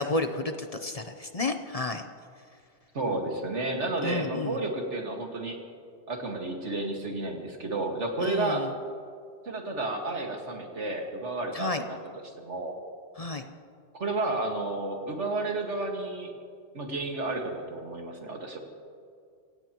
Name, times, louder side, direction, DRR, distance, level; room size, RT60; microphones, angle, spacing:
voice 1, 0.0-2.0 4.0-4.6 8.2-8.7 11.5-11.8 13.2-13.4, left 2 dB, 35° left, 7 dB, 0.8 m, -31 dB
voice 2, 2.9-5.6 6.1-8.7 9.5-12.0 12.2-12.7 13.9-16.3 16.7-18.6, right 2 dB, 85° right, 2 dB, 2.2 m, -31 dB
25.5 x 17.5 x 3.0 m, 2.3 s
omnidirectional pair, 1.2 m